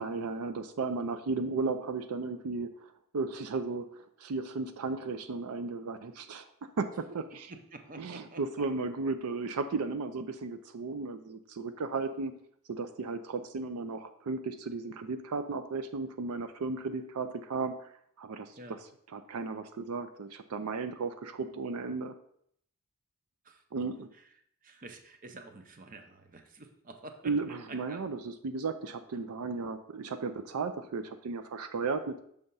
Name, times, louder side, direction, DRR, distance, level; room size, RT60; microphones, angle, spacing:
voice 1, 0.0-6.5 6.8-7.5 8.0-12.3 12.7-17.9 18.2-18.8 19.1-22.1 23.7-24.1 27.2-32.2, right 4 dB, 85° right, 9 dB, 0.5 m, -35 dB
voice 2, 7.5-8.4 18.6-18.8 23.4-23.6 24.6-27.2 27.7-28.0, right 2 dB, 40° right, 6 dB, 0.7 m, -48 dB
6.5 x 3.5 x 5.5 m, 0.68 s
head